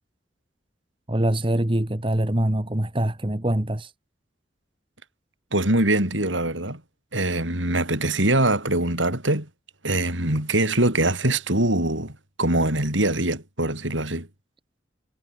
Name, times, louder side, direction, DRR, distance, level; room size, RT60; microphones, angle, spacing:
voice 1, 1.1-3.9, right 1 dB, 30° right, 1.5 m, -24 dB
voice 2, 5.5-6.8 7.1-9.5 9.8-14.3, right 1 dB, 90° right, 7.6 m, -23 dB
head